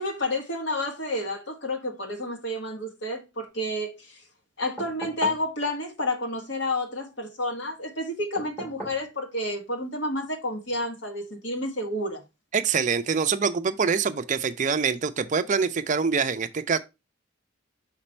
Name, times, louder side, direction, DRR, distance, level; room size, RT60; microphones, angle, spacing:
voice 1, 0.0-4.2 4.6-12.2, left 1 dB, 65° left, 1.6 m, -30 dB
sound 1, 4.8-5.5 8.4-9.1 10.7-10.8, right 1 dB, 10° left, 1.8 m, -38 dB
voice 2, 12.5-16.8, right 5 dB, 40° right, 0.4 m, -25 dB
5.9 x 4.3 x 4.3 m
head